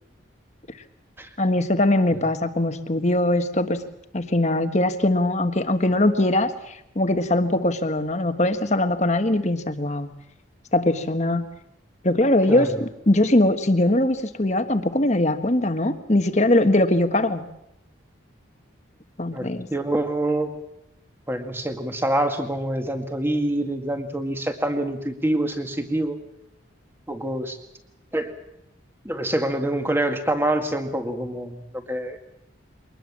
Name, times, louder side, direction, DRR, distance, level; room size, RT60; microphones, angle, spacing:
voice 1, 1.4-3.8 4.1-10.1 10.7-11.5 12.0-17.5 19.2-19.7, left 1 dB, 35° left, 9 dB, 1.4 m, -21 dB
voice 2, 19.3-20.5 21.3-26.2 27.1-27.6 28.1-28.3 29.0-32.2, right 1 dB, 10° right, 6 dB, 2.0 m, -26 dB
23.0 x 20.0 x 7.4 m, 0.83 s
head